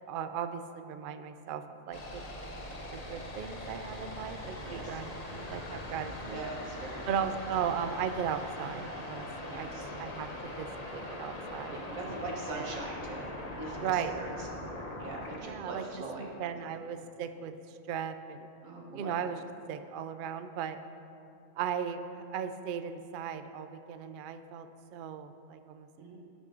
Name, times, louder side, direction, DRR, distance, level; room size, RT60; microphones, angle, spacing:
voice 1, 0.0-2.2 2.9-6.4 7.1-9.7 10.0-10.3 10.6-11.8 12.6-12.7 13.8-14.2 15.4-18.5 18.9-19.4 19.7-20.8 21.6-25.9, right 8 dB, 65° right, 10 dB, 0.5 m, -37 dB
sound 1, 1.9-15.4, left 1 dB, 30° left, 1.0 m, -41 dB
voice 2, 4.6-5.0 6.3-7.1 9.5-9.9 11.6-13.3 13.5-14.6 15.0-16.3 18.6-19.2 26.0-26.2, right 2 dB, 85° right, -1 dB, 1.8 m, -41 dB
17.0 x 6.1 x 3.9 m, 2.7 s
omnidirectional pair, 1.4 m